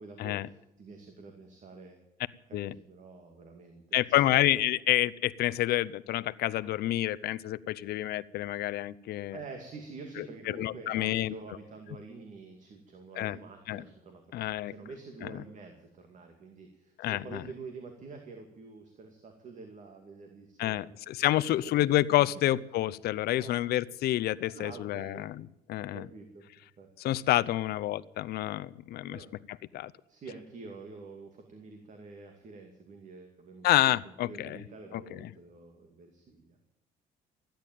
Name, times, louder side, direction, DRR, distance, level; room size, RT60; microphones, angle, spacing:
voice 1, 0.0-2.0 2.5-4.2 9.3-14.2 14.7-21.1 23.4-23.6 24.5-25.3 25.8-26.4 26.8-27.1 29.1-29.3 30.1-36.7, right 4 dB, 45° right, 4 dB, 2.4 m, -47 dB
voice 2, 3.9-9.4 10.2-11.3 13.2-13.4 13.7-13.8 14.3-14.7 17.0-17.4 20.6-25.4 25.7-26.1 27.0-29.2 29.7-29.9 33.6-34.6 34.9-35.3, left 14 dB, 70° left, 16 dB, 0.7 m, -28 dB
15.0 x 10.5 x 9.1 m, 0.86 s
cardioid pair, 110°, 17 cm